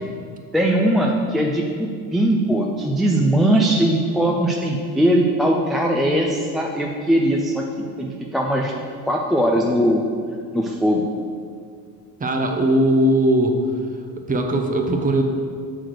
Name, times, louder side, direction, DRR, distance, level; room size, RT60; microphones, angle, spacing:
voice 1, 0.5-8.7 9.1-10.0 10.5-11.1, right 1 dB, ahead, -1 dB, 0.3 m, -20 dB
voice 2, 12.2-13.6 14.2-15.2, right 1 dB, 20° right, 3 dB, 0.7 m, -19 dB
6.4 x 4.0 x 6.3 m, 2.1 s
cardioid pair, 120°, 40 cm